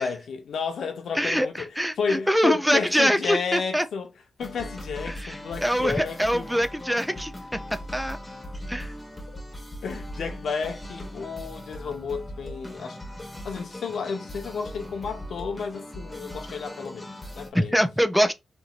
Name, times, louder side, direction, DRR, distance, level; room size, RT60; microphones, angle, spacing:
voice 1, 0.0-1.7 2.0-4.1 4.4-6.6 9.3-9.4 9.8-13.0 13.4-17.8, left 5 dB, 75° left, 0.7 m, -32 dB
voice 2, 1.1-3.8 5.1-7.3 7.9-8.2 8.7-8.9 17.5-18.3, equal, ahead, 0.5 m, -24 dB
sound 1, 4.4-17.5, equal, 20° left, 1.2 m, -39 dB
3.0 x 2.6 x 2.4 m
cardioid pair, 70°, 0 cm